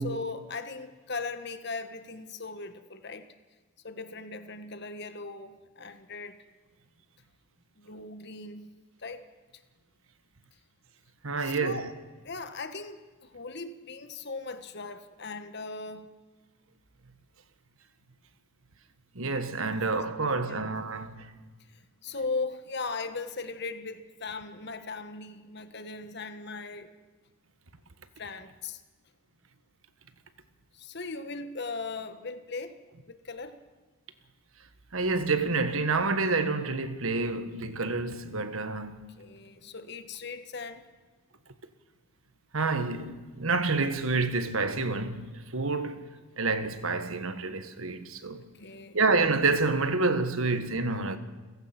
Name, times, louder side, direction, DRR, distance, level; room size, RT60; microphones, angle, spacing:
voice 1, 0.0-3.3 3.8-6.4 7.8-8.7 9.0-9.3 11.4-11.9 12.2-16.1 20.4-20.7 22.0-26.9 28.2-28.8 30.7-32.7 33.1-33.6 39.2-40.8 48.6-49.0, left 3 dB, 50° left, 1.4 m, -38 dB
voice 2, 11.2-11.9 19.1-21.3 34.9-38.9 42.5-46.0 46.4-48.4 48.9-51.2, right 3 dB, 75° right, 1.4 m, -28 dB
29.5 x 15.5 x 6.0 m
head